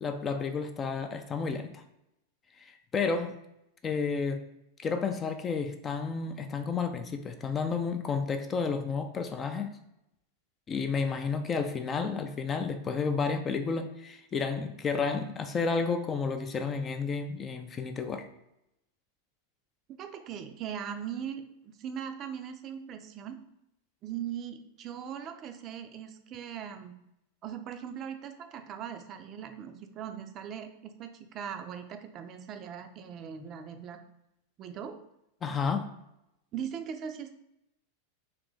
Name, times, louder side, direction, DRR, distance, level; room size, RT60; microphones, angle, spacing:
voice 1, 0.0-1.8 2.6-3.4 3.8-4.5 4.8-9.7 10.7-18.3 35.4-35.9, left 5 dB, 25° left, 7 dB, 0.4 m, -31 dB
voice 2, 20.0-23.4 24.0-26.9 27.4-34.0 34.6-35.0 36.5-37.4, right 8 dB, 35° right, 7 dB, 0.5 m, -40 dB
3.3 x 2.9 x 3.9 m, 0.84 s
figure-of-eight pair, 90°, 0 cm